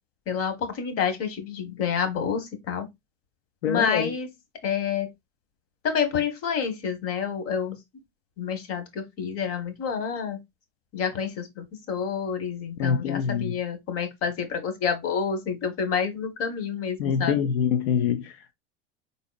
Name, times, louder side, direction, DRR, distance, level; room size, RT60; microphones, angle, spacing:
voice 1, 0.3-2.9 3.6-4.3 4.6-5.1 5.8-7.8 8.4-10.4 10.9-17.5, left 7 dB, 50° left, 1.6 m, -28 dB
voice 2, 3.6-4.1 12.8-13.5 17.0-18.5, left 7 dB, 85° left, 0.6 m, -25 dB
4.1 x 4.0 x 2.5 m
supercardioid pair, 110°, 30 cm